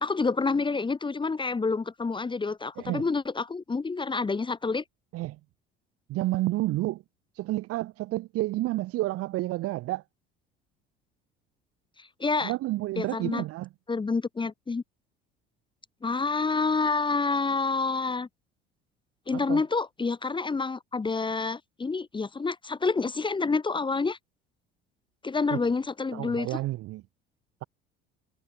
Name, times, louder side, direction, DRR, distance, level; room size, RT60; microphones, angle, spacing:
voice 1, 0.0-4.8 12.2-12.5 13.0-13.4 13.9-14.8 16.0-18.3 19.3-24.2 25.2-26.5, left 4 dB, 15° left, 1.1 m, -28 dB
voice 2, 2.8-3.1 5.1-5.4 6.1-7.0 7.3-10.0 12.4-13.7 19.3-19.6 25.5-25.6 26.1-27.0, right 17 dB, 50° right, 2.0 m, -30 dB
figure-of-eight pair, 60°, 29 cm